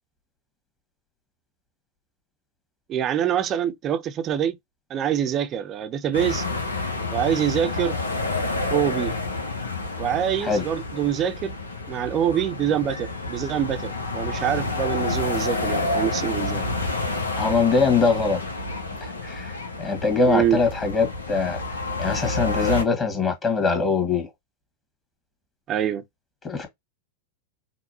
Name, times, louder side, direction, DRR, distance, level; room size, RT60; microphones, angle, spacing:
voice 1, 2.9-4.6 4.9-6.4 7.1-8.0 8.7-9.1 10.0-11.5 11.9-16.6 20.3-20.6 25.7-26.0, right 9 dB, 30° right, 0.7 m, -25 dB
sound 1, 6.1-22.8, left 2 dB, 75° left, 1.0 m, -29 dB
voice 2, 17.4-18.4 19.0-21.6 22.0-24.3 26.4-26.7, left 4 dB, 20° left, 1.8 m, -22 dB
5.7 x 2.4 x 2.8 m
figure-of-eight pair, 90°, 0 cm